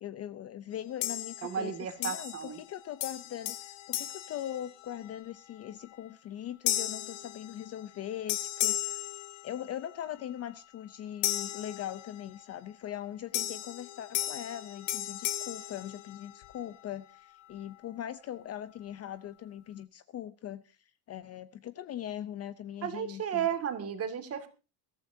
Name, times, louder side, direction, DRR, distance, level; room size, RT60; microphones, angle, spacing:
voice 1, 0.0-9.1 9.4-20.8 21.1-23.5, left 11 dB, 35° left, 13 dB, 0.6 m, -41 dB
sound 1, 1.0-1.7 2.0-2.7 3.0-5.2 5.7-6.0 6.7-8.0 8.3-9.9 11.2-12.4 13.3-16.6, left 14 dB, 90° left, 1.9 m, -35 dB
voice 2, 1.4-2.6 22.8-24.5, right 8 dB, 30° right, 7 dB, 2.2 m, -33 dB
22.0 x 14.0 x 2.7 m, 0.32 s
cardioid pair, 160°, 45 cm